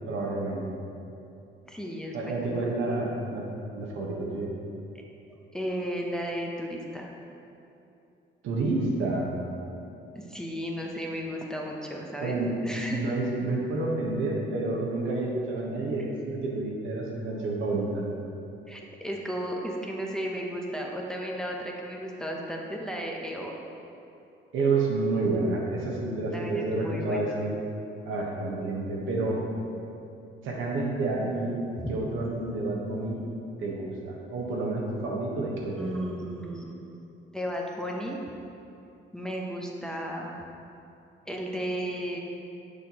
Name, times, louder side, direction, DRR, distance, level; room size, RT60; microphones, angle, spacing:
voice 1, 0.1-0.7 2.1-3.5 3.7-4.5 8.4-9.3 12.2-12.5 12.9-18.0 24.5-27.6 28.0-29.4 30.4-31.6 31.9-33.2 33.6-35.9, right 2 dB, 80° right, -2 dB, 1.1 m, -29 dB
voice 2, 1.7-2.5 5.5-7.1 10.1-12.4 12.6-13.1 18.7-23.5 26.3-27.4 31.8-31.9 35.8-36.7 37.3-38.2 39.1-40.4 41.3-42.2, equal, 5° left, -2 dB, 0.7 m, -34 dB
6.4 x 5.8 x 2.9 m, 2.7 s
cardioid pair, 90°, 20 cm